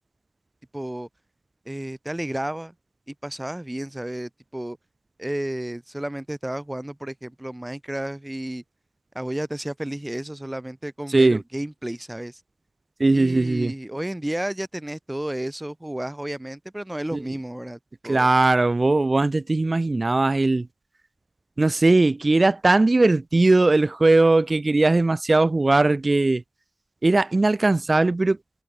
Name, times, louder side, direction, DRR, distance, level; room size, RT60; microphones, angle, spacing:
voice 1, 0.7-1.1 1.6-2.7 3.1-4.8 5.2-8.6 9.1-12.4 13.1-18.3, right 1 dB, 10° right, 1.2 m, -32 dB
voice 2, 13.0-13.7 17.1-17.2 18.1-20.7 21.6-26.4 27.0-28.4, right 2 dB, 30° right, 0.8 m, -19 dB
wide cardioid pair, 105°, 0 cm